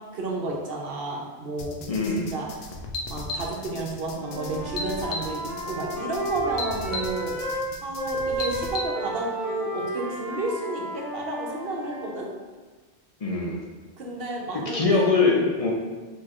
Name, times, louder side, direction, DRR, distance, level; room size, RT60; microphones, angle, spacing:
voice 1, 0.1-1.8 2.1-2.5 3.1-12.3 14.0-15.5, right 2 dB, 65° right, -1 dB, 1.0 m, -32 dB
sound 1, 1.6-8.9, left 3 dB, 75° left, 0.8 m, -35 dB
voice 2, 1.9-2.3 13.2-13.6 14.7-15.7, left 4 dB, 40° left, -1 dB, 0.6 m, -22 dB
Wind instrument woodwind instrument, 4.1-7.7 8.0-12.2, right 1 dB, 35° right, 1.5 m, -32 dB
4.6 x 4.3 x 2.5 m, 1.3 s
omnidirectional pair, 1.1 m